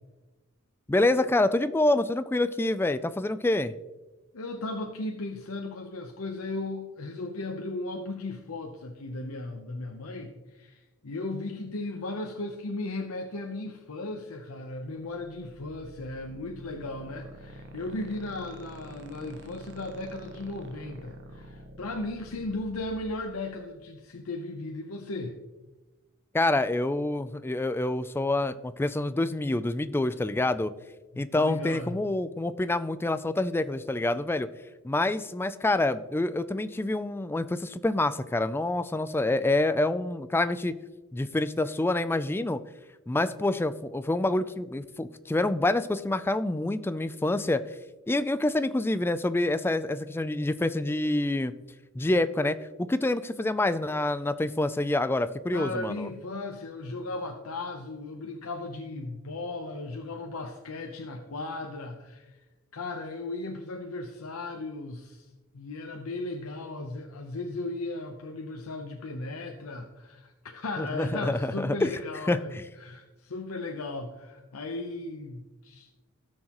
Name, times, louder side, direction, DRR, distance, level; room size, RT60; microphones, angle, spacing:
voice 1, 0.9-3.7 26.3-30.7 31.2-34.5 34.8-40.7 41.1-42.6 43.1-47.6 48.1-51.5 52.0-56.1 70.8-71.9 72.3-72.4, left 2 dB, 10° left, 13 dB, 0.3 m, -27 dB
voice 2, 4.3-25.4 31.1-32.0 55.5-62.4 62.7-65.3 65.5-76.0, left 2 dB, 85° left, 3 dB, 0.8 m, -36 dB
sound 1, 15.0-23.9, right 1 dB, 55° right, 0.9 m, -48 dB
16.5 x 6.4 x 3.0 m, 1.2 s
head